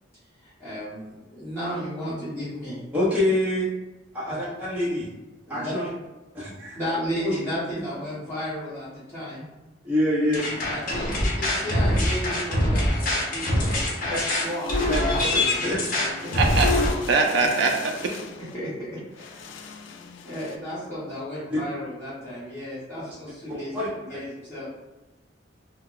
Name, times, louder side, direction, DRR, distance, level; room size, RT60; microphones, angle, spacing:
voice 1, 0.4-2.8 4.3-4.5 5.5-5.8 6.7-9.4 10.7-14.7 15.0-15.6 16.2-16.3 18.0-18.1 18.5-18.7 19.1-19.7 20.2-24.7, equal, 15° left, -13 dB, 1.1 m, -34 dB
voice 2, 2.9-3.7 4.1-5.1 5.5-5.9 6.3-6.8 7.2-7.3 9.8-10.4 14.1-14.2 14.9-15.0 15.3-15.8 23.7-23.9, left 1 dB, 5° right, -11 dB, 0.8 m, -25 dB
sound 1, 10.3-16.9, left 1 dB, 50° left, 0.6 m, -24 dB
sound 2, 14.1-20.6, left 5 dB, 80° left, 0.3 m, -40 dB
voice 3, 16.4-16.7 17.1-17.9, right 4 dB, 65° right, 2 dB, 0.4 m, -21 dB
2.2 x 2.2 x 3.7 m, 1.1 s
head